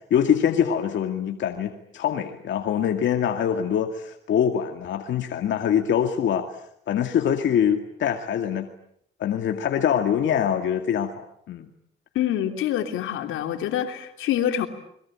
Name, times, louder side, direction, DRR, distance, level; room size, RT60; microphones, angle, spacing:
voice 1, 0.1-6.5 6.9-8.7 9.2-11.7, left 8 dB, 70° left, 5 dB, 2.2 m, -24 dB
voice 2, 12.1-14.7, left 11 dB, 90° left, 6 dB, 3.3 m, -26 dB
30.0 x 22.5 x 8.7 m, 0.73 s
cardioid pair, 90°, 20 cm